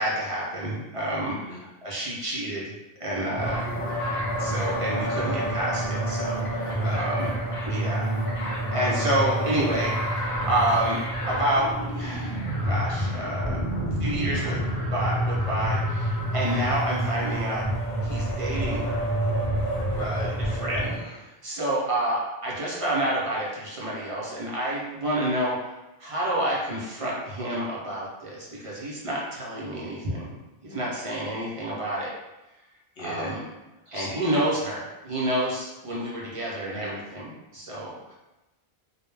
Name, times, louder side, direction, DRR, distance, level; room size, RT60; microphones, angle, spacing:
voice 1, 0.0-2.7 3.0-3.7 4.4-7.3 7.6-8.1 8.7-11.0 11.3-12.4 12.6-13.6 14.0-14.6 14.9-17.6 18.0-19.1 20.6-25.7 26.0-30.3 30.6-32.1 33.0-33.4 33.9-38.1, right 1 dB, 45° right, -5 dB, 0.4 m, -29 dB
sound 1, 3.3-21.0, right 1 dB, 40° left, 0.6 m, -28 dB
voice 2, 3.7-4.0 6.8-7.0 19.9-20.4 20.8-21.2 33.0-33.4 33.9-34.3, equal, 70° left, -4 dB, 0.8 m, -36 dB
2.2 x 2.0 x 3.1 m, 1.0 s
omnidirectional pair, 1.0 m